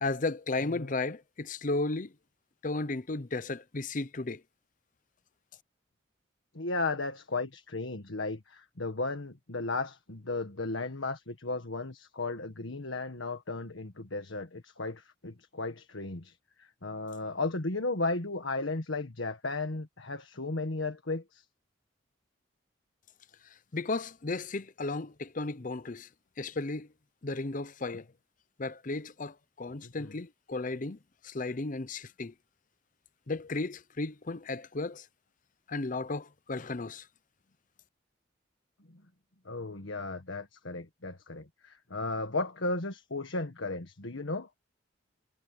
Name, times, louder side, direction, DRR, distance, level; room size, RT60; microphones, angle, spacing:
voice 1, 0.0-2.1 2.6-4.4 23.7-26.1 26.4-26.9 27.2-28.1 28.6-32.3 33.3-35.1 35.7-37.1, left 3 dB, 40° left, 0.7 m, -34 dB
voice 2, 6.5-21.4 29.8-30.1 38.9-39.0 39.4-44.5, left 3 dB, 80° left, 1.6 m, -35 dB
head